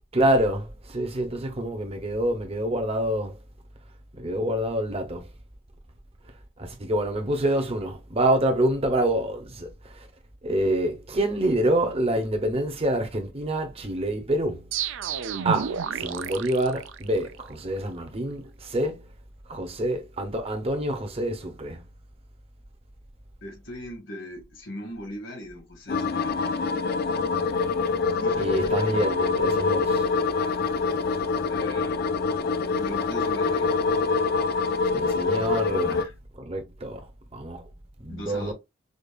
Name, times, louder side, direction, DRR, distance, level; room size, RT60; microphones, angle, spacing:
voice 1, 0.1-3.4 4.1-5.3 6.6-10.1 10.4-14.7 15.4-19.0 19.5-21.9 28.4-30.1 34.9-36.0 36.4-37.1 37.3-37.7 38.0-38.5, right 1 dB, 30° right, 0.8 m, -27 dB
sound 1, 14.7-17.5, right 7 dB, 75° right, 0.4 m, -31 dB
voice 2, 23.4-26.7 28.2-29.2 31.5-32.1 32.8-33.9 35.9-36.1 36.5-36.6 38.1-38.5, left 1 dB, 70° left, 1.8 m, -40 dB
sound 2, 25.9-36.0, left 4 dB, 50° left, 0.4 m, -25 dB
5.1 x 2.4 x 2.4 m
head